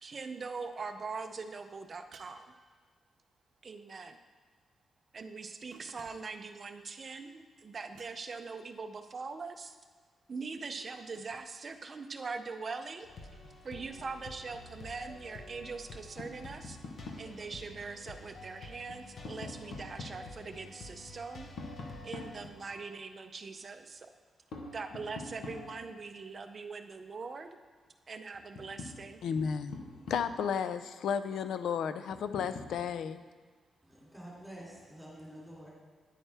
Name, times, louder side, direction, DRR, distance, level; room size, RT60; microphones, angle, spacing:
voice 1, 0.0-2.5 3.6-4.2 5.1-9.7 10.3-13.1 13.6-16.8 17.2-21.5 22.0-24.1 24.7-27.5 28.1-29.2, right 4 dB, 35° right, 8 dB, 0.4 m, -42 dB
sound 1, 2.1-3.2 5.7-6.5 7.9-8.5 10.8-11.5, right 5 dB, 90° right, 0.7 m, -59 dB
sound 2, 13.0-22.5, left 2 dB, 50° left, 0.9 m, -50 dB
Tap, 16.2-17.4 18.7-20.3 21.6-23.0 24.5-26.0 27.9-28.0 28.3-30.5 32.1-32.8, left 3 dB, 70° left, 1.2 m, -45 dB
voice 2, 29.2-29.8 30.1-33.2, left 7 dB, 85° left, 12 dB, 0.4 m, -33 dB
voice 3, 33.8-35.7, right 1 dB, ahead, -6 dB, 2.7 m, -48 dB
9.9 x 8.7 x 3.4 m, 1.5 s
wide cardioid pair, 175°, 0 cm